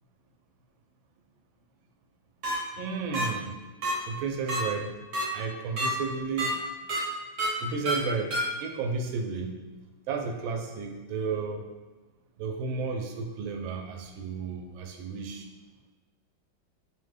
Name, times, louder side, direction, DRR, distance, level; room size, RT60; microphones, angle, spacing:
sound 1, 2.4-2.5 3.1-3.2 3.8-3.9 4.5-4.6 5.1-5.2 5.8-5.9 6.4-6.5 6.9-7.0 7.4-7.5 7.9-8.0 8.3-8.4, right 2 dB, 55° right, 1.4 m, -28 dB
voice 1, 2.7-3.6 4.1-4.9 5.3-6.7 7.6-8.3 8.6-9.6 10.1-11.6 12.4-15.5, right 4 dB, 90° right, 3 dB, 1.4 m, -32 dB
5.2 x 2.1 x 3.3 m, 1.2 s
omnidirectional pair, 2.1 m